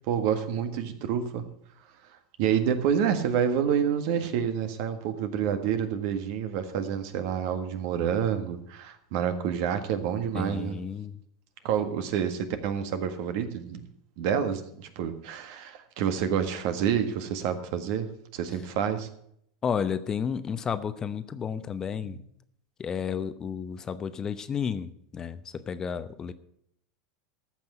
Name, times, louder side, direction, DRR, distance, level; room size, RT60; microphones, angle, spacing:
voice 1, 0.1-1.5 2.4-10.8 11.6-13.8 14.2-19.1 21.9-22.2, right 8 dB, 60° right, 9 dB, 1.6 m, -28 dB
voice 2, 10.3-11.2 19.6-22.2 22.8-26.3, left 7 dB, 25° left, 12 dB, 0.9 m, -32 dB
14.5 x 6.0 x 8.1 m, 0.70 s
hypercardioid pair, 95°, 2 cm